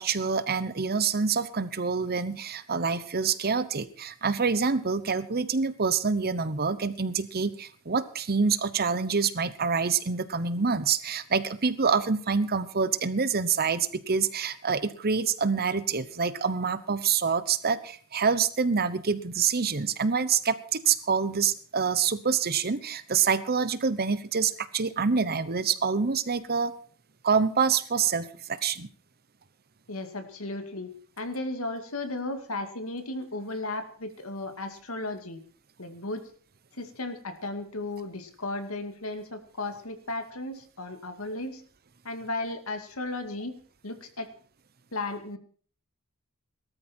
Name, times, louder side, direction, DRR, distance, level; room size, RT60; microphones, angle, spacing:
voice 1, 0.0-26.7 27.2-28.9, right 5 dB, 45° right, 14 dB, 1.0 m, -26 dB
voice 2, 29.9-30.9 31.2-35.4 35.8-36.3 36.7-41.6 42.0-43.5 43.8-44.3 44.9-45.4, left 2 dB, 70° left, 7 dB, 2.3 m, -35 dB
18.0 x 13.0 x 4.5 m, 0.43 s
head